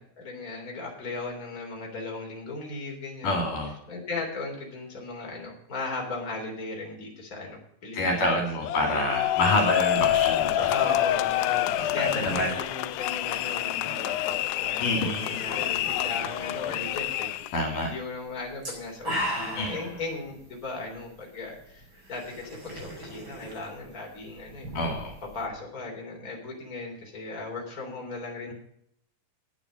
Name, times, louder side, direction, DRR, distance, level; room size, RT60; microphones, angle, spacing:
voice 1, 0.0-3.4 3.9-8.4 10.7-24.7 25.3-28.5, left 3 dB, 25° left, 0 dB, 3.5 m, -37 dB
voice 2, 3.2-3.8 7.9-10.7 11.9-12.5 14.8-15.4 17.5-17.9 19.6-19.9 24.8-25.1, left 1 dB, 65° left, 2 dB, 3.8 m, -27 dB
sound 1, 8.6-17.6, left 13 dB, 85° left, 2.4 m, -27 dB
sound 2, 9.2-25.5, equal, 25° right, 5.8 m, -41 dB
10.5 x 9.0 x 7.4 m, 0.70 s
omnidirectional pair, 4.1 m